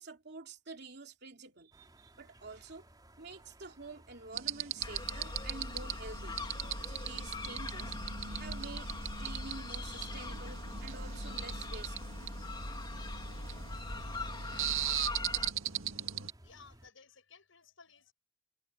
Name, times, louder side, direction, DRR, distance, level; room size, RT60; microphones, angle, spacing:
voice 1, 0.0-2.9 3.2-6.4 6.9-8.0 8.4-12.2, right 3 dB, 50° right, 3.2 m, -49 dB
sound 1, 1.7-16.9, right 1 dB, 20° right, 4.2 m, -60 dB
sound 2, 4.3-16.3, right 11 dB, 75° right, 1.8 m, -40 dB
sound 3, 4.8-15.5, left 2 dB, 20° left, 2.4 m, -41 dB
voice 2, 15.9-18.1, left 5 dB, 65° left, 6.9 m, -59 dB
head